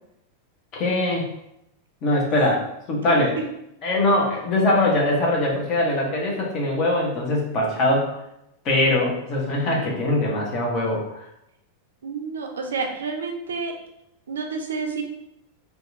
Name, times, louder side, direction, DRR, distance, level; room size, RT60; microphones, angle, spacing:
voice 1, 0.7-1.3 2.0-3.3 3.8-8.1 8.6-11.3, left 1 dB, 35° left, -2 dB, 0.8 m, -22 dB
voice 2, 12.0-13.7 14.3-15.0, right 4 dB, 65° right, 2 dB, 0.4 m, -29 dB
2.7 x 2.3 x 2.5 m, 0.82 s
figure-of-eight pair, 90°, 0 cm